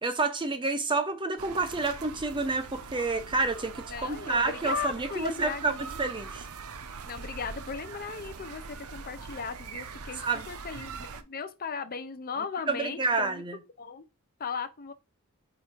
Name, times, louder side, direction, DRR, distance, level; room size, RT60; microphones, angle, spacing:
voice 1, 0.0-5.7 6.0-6.5 10.2-10.5 12.7-13.6, right 3 dB, 20° right, 0.8 m, -29 dB
sound 1, 1.4-11.2, right 5 dB, 80° right, 0.7 m, -42 dB
voice 2, 3.9-6.0 7.1-14.1 14.4-14.9, left 5 dB, 40° left, 0.6 m, -37 dB
4.9 x 4.7 x 4.4 m
head